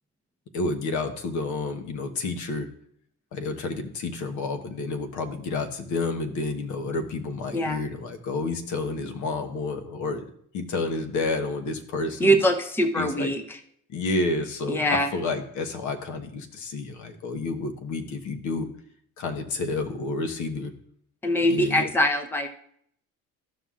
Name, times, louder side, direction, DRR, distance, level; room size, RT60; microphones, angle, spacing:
voice 1, 0.5-2.7 3.3-10.3 10.5-12.4 13.0-13.3 13.9-18.7 19.2-20.7 21.4-21.9, left 3 dB, 60° left, 6 dB, 1.2 m, -30 dB
voice 2, 12.2-13.4 14.7-15.1 21.2-22.5, equal, 5° left, 7 dB, 0.7 m, -23 dB
13.5 x 5.6 x 2.5 m, 0.65 s
supercardioid pair, 100°, 33 cm